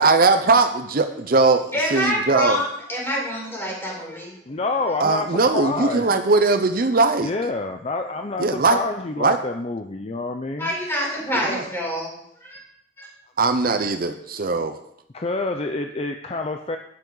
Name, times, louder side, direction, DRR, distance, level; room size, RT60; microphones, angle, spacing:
voice 1, 0.0-2.6 5.0-7.3 8.4-8.8 9.2-9.4 11.3-11.6 13.4-14.8, right 3 dB, 55° right, 8 dB, 0.7 m, -20 dB
voice 2, 1.7-4.4 10.6-12.6 13.0-13.1, equal, 15° left, -3 dB, 4.3 m, -26 dB
voice 3, 4.5-6.1 7.2-10.8 15.1-16.8, left 3 dB, 35° left, 5 dB, 0.6 m, -27 dB
12.0 x 9.6 x 4.0 m, 0.73 s
head